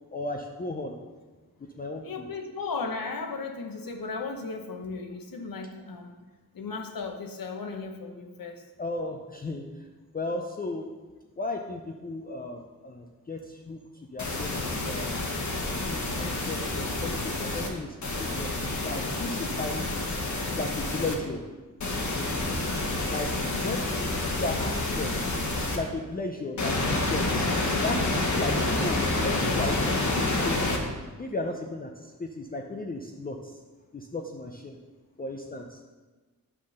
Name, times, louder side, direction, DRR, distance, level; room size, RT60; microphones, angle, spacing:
voice 1, 0.1-1.0 1.7-2.3 8.8-9.9 10.1-10.9 11.4-15.2 15.5-18.5 18.8-21.4 23.1-23.3 23.6-24.1 24.4-25.3 25.6-27.4 27.8-30.9 31.2-33.6 33.9-34.8 35.2-35.8, left 2 dB, 25° left, 2 dB, 0.5 m, -35 dB
voice 2, 2.0-6.1 6.5-8.6 23.5-23.8, left 4 dB, 70° left, 3 dB, 0.9 m, -36 dB
sound 1, 14.2-17.7 18.0-21.1 21.8-25.8 26.6-30.8, left 2 dB, 55° left, 1.2 m, -28 dB
8.6 x 3.7 x 6.4 m, 1.3 s
wide cardioid pair, 145°, 35 cm